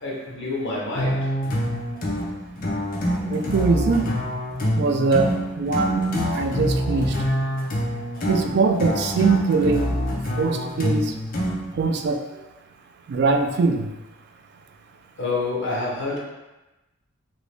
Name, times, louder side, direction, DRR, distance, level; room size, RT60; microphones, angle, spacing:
voice 1, 0.0-1.3 15.2-16.2, left 3 dB, 60° left, -4 dB, 0.9 m, -27 dB
sound 1, 1.0-11.8, equal, 45° left, 0.6 m, -26 dB
voice 2, 3.3-4.1 4.8-6.0 6.3-7.2 8.3-9.9 10.4-11.1 11.7-12.2 13.1-13.9, right 4 dB, 55° right, 5 dB, 0.3 m, -22 dB
2.9 x 2.6 x 3.3 m, 1.0 s
head